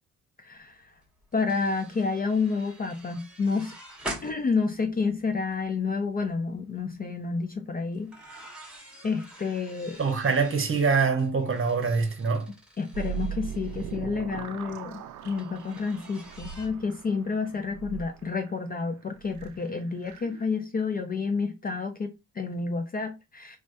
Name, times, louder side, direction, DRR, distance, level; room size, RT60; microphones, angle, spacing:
voice 1, 0.4-0.8 1.3-3.7 4.2-8.1 9.0-10.0 12.8-23.6, left 4 dB, 25° left, 0.5 m, -29 dB
sound 1, 0.7-0.8 1.0-5.6 6.1-6.3 7.9-14.0 15.4-16.7, right 1 dB, 5° right, 1.1 m, -45 dB
voice 2, 10.0-12.5, right 5 dB, 35° right, 0.9 m, -24 dB
sound 2, 12.9-20.4, right 10 dB, 50° right, 0.5 m, -40 dB
3.1 x 2.2 x 2.5 m
hypercardioid pair, 50°, 37 cm